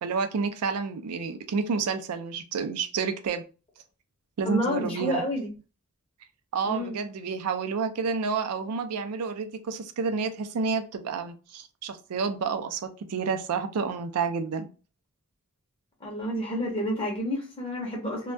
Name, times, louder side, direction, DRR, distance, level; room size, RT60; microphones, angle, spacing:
voice 1, 0.0-3.4 4.4-5.2 6.5-14.7, right 5 dB, 80° right, 8 dB, 0.4 m, -29 dB
voice 2, 4.5-5.5 6.6-7.0 16.0-18.3, equal, 25° left, -1 dB, 0.6 m, -29 dB
2.2 x 2.2 x 2.5 m, 0.33 s
head